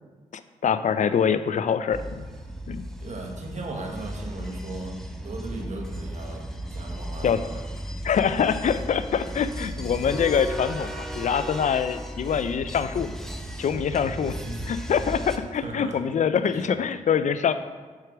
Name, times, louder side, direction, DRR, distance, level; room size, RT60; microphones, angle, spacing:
voice 1, 0.3-2.3 2.7-2.8 7.2-7.4 8.0-13.1 13.6-14.4 14.7-17.5, left 7 dB, 60° left, 12 dB, 0.4 m, -24 dB
sound 1, 1.9-15.4, right 1 dB, 5° left, 0.8 m, -35 dB
voice 2, 3.0-7.6 14.2-14.6 15.5-16.0 16.4-16.8, right 2 dB, 50° right, 0 dB, 1.4 m, -37 dB
4.7 x 4.7 x 6.0 m, 1.4 s
supercardioid pair, 45°, 15 cm